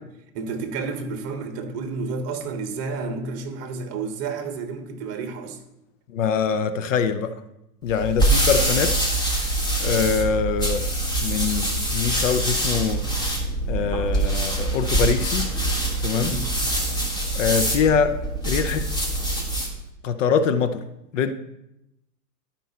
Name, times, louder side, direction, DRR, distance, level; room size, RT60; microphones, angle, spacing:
voice 1, 0.3-5.6 16.2-16.5, right 4 dB, 30° right, 5 dB, 1.4 m, -31 dB
voice 2, 6.1-7.3 7.8-8.9 9.8-10.9 11.2-13.0 13.7-15.5 16.0-16.4 17.3-18.2 18.4-18.9 20.0-20.8 21.1-21.3, left 6 dB, 50° left, 10 dB, 0.7 m, -23 dB
sound 1, 7.9-19.8, right 1 dB, 10° left, 1.5 m, -24 dB
12.0 x 5.4 x 4.2 m, 0.87 s
hypercardioid pair, 125°, 50 cm